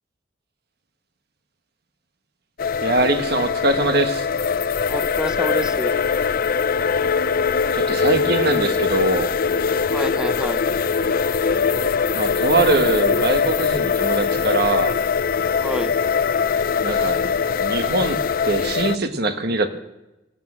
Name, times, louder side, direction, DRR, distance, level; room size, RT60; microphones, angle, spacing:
sound 1, 2.6-19.0, left 6 dB, 50° left, 0.5 m, -22 dB
voice 1, 2.8-4.3 7.7-9.3 12.1-15.0 16.8-17.3 17.6-19.7, right 2 dB, 55° right, 8 dB, 1.2 m, -22 dB
voice 2, 4.8-5.9 9.9-10.7 15.6-15.9, equal, 5° right, 11 dB, 0.7 m, -28 dB
17.0 x 9.6 x 7.7 m, 0.98 s
head